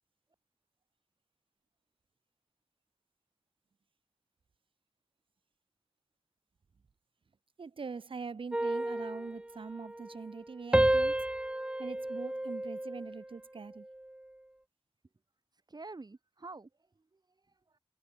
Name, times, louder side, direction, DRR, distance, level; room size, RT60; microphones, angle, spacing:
voice 1, 7.6-11.2 11.8-13.9, right 5 dB, 80° right, 1.4 m, -43 dB
sound 1, 8.5-10.4 10.7-13.3 13.8-14.1, right 1 dB, 10° right, 0.5 m, -32 dB
voice 2, 15.5-17.8, right 3 dB, 50° right, 5.3 m, -49 dB
wide cardioid pair, 65°, 9 cm